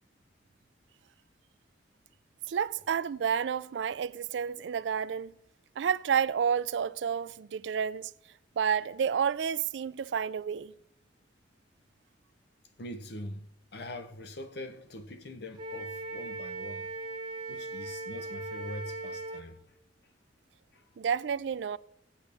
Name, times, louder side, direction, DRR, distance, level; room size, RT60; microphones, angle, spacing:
voice 1, 2.5-5.3 5.8-8.1 8.6-10.7 21.0-21.8, right 7 dB, 80° right, 0.4 m, -30 dB
voice 2, 12.8-16.9 17.5-19.8 20.0-20.1 20.7-20.9, left 1 dB, 65° left, 0.8 m, -43 dB
Wind instrument woodwind instrument, 15.5-19.4, right 3 dB, 25° right, 1.3 m, -39 dB
17.5 x 8.1 x 3.4 m
head